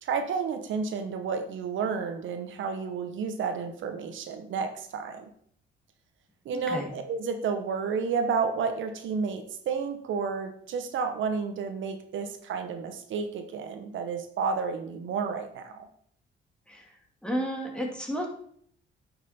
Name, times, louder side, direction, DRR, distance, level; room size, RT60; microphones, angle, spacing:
voice 1, 0.0-5.3 6.4-15.9, right 5 dB, 75° right, 7 dB, 1.1 m, -31 dB
voice 2, 6.5-6.9 16.7-16.9 17.2-18.3, equal, 5° left, 0 dB, 2.4 m, -32 dB
9.3 x 6.0 x 4.3 m, 0.62 s
cardioid pair, 90°, 20 cm